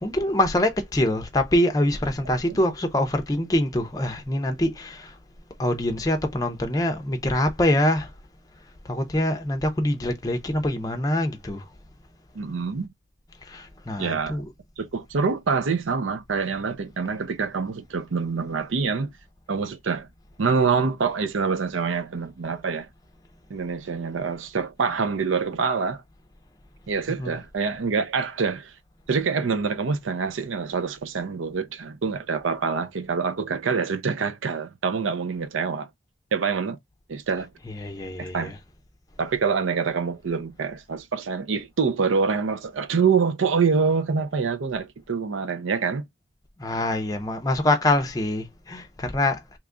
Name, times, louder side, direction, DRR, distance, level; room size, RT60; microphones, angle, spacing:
voice 1, 0.0-5.2 5.6-8.1 8.8-11.7 13.4-14.5 27.1-27.4 37.6-38.5 46.6-49.6, left 1 dB, 20° left, 0.5 m, -25 dB
voice 2, 12.3-12.9 14.0-14.4 14.8-19.1 19.5-20.1 20.4-22.9 23.5-26.0 26.9-28.7 29.1-35.9 36.3-36.8 37.1-37.5 38.2-38.5 39.2-46.0, right 5 dB, 90° right, 0.5 m, -26 dB
3.0 x 2.3 x 3.6 m
head